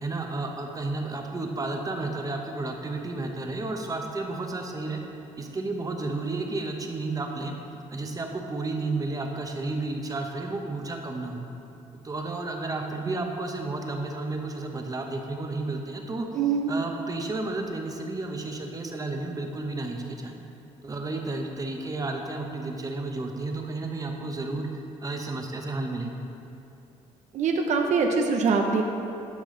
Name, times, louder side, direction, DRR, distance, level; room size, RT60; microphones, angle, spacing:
voice 1, 0.0-5.0 5.4-7.5 7.9-11.4 12.0-16.3 16.7-20.4 20.8-26.1, right 2 dB, 25° right, 3 dB, 1.0 m, -32 dB
voice 2, 16.4-16.7 27.3-28.8, right 5 dB, 60° right, 3 dB, 0.8 m, -23 dB
12.0 x 4.9 x 3.9 m, 2.7 s
cardioid pair, 90°, 14 cm